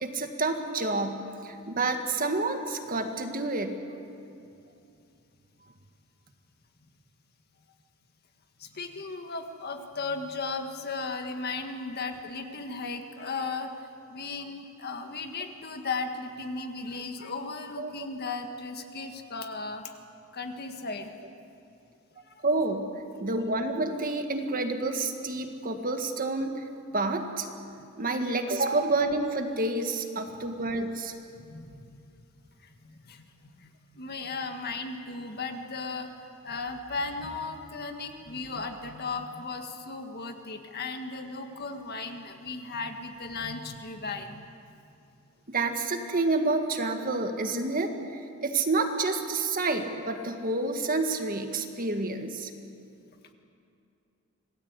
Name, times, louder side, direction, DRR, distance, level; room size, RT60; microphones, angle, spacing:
voice 1, 0.0-3.8 17.8-17.9 22.4-22.9 23.2-26.5 26.9-27.5 28.0-31.1 45.5-47.9 48.4-52.5, right 3 dB, 40° right, 5 dB, 1.8 m, -29 dB
voice 2, 8.6-19.9 20.3-21.1 22.2-22.4 28.2-28.3 31.3-32.0 32.6-44.5, left 3 dB, 50° left, 5 dB, 1.8 m, -36 dB
26.5 x 18.5 x 8.2 m, 2.6 s
head